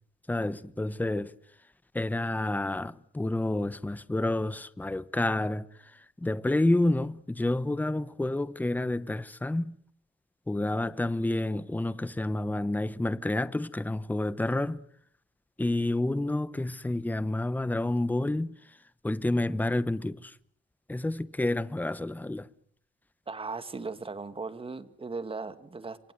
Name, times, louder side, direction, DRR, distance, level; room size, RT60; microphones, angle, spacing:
voice 1, 0.3-1.3 1.9-9.7 10.5-14.8 15.6-18.6 19.0-20.3 20.9-22.5, left 2 dB, 10° left, 1.0 m, -29 dB
voice 2, 23.3-26.1, right 4 dB, 25° right, 2.4 m, -37 dB
28.0 x 24.0 x 8.0 m
cardioid pair, 90°, 20 cm